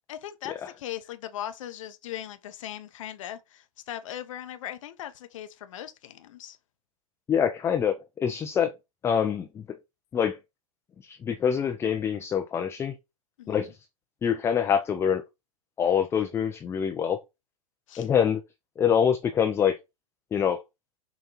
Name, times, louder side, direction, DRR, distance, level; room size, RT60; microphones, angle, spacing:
voice 1, 0.1-6.6 13.4-13.7 17.9-18.1, left 11 dB, 60° left, 0.6 m, -39 dB
voice 2, 7.3-8.7 9.0-9.6 10.1-10.4 11.0-13.0 13.5-13.7 14.2-15.2 15.8-17.2 18.0-18.4 18.8-19.8 20.3-20.6, left 8 dB, 15° left, 0.3 m, -25 dB
5.3 x 2.2 x 2.9 m
figure-of-eight pair, 95°, 19 cm